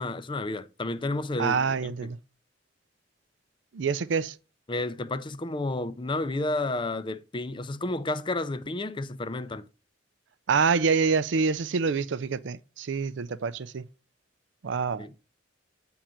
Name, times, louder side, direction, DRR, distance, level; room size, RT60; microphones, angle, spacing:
voice 1, 0.0-2.1 4.7-9.7 15.0-15.1, left 2 dB, 25° left, 0.5 m, -31 dB
voice 2, 1.4-2.2 3.7-4.4 10.5-13.8 14.6-15.1, right 5 dB, 70° right, 0.5 m, -26 dB
8.7 x 3.8 x 4.4 m
head